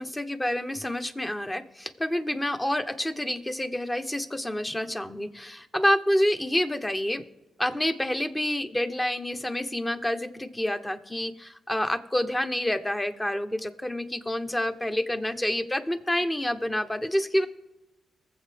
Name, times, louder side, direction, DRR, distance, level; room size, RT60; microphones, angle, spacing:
voice 1, 0.0-7.2 7.6-17.5, left 1 dB, 15° left, 9 dB, 1.0 m, -28 dB
22.5 x 7.7 x 3.6 m, 0.99 s
supercardioid pair, 55°, 0 cm